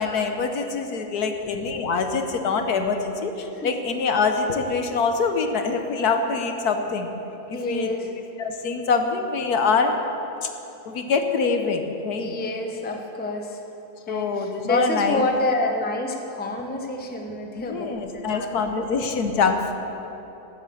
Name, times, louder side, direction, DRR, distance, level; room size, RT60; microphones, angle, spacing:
voice 1, 0.0-7.1 7.5-8.1 8.4-9.9 10.4-10.5 10.8-12.3 14.1-15.3 17.5-19.7, left 4 dB, 70° left, 6 dB, 1.5 m, -24 dB
voice 2, 7.5-8.1 12.2-13.6 14.1-17.9 18.1-18.8, left 2 dB, 10° left, 3 dB, 0.7 m, -28 dB
12.5 x 8.8 x 7.8 m, 3.0 s
omnidirectional pair, 1.7 m